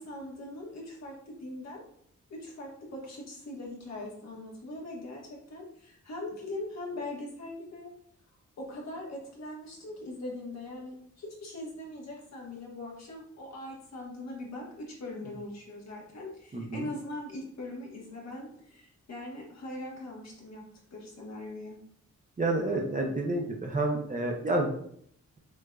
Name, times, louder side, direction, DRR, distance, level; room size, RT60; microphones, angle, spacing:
voice 1, 0.0-1.8 2.3-7.9 8.6-20.6 20.9-21.8, left 1 dB, 60° left, -2 dB, 1.2 m, -41 dB
voice 2, 16.5-16.9 22.4-24.7, right 2 dB, 25° right, 1 dB, 0.6 m, -29 dB
6.2 x 2.5 x 2.3 m, 0.65 s
wide cardioid pair, 170°, 30 cm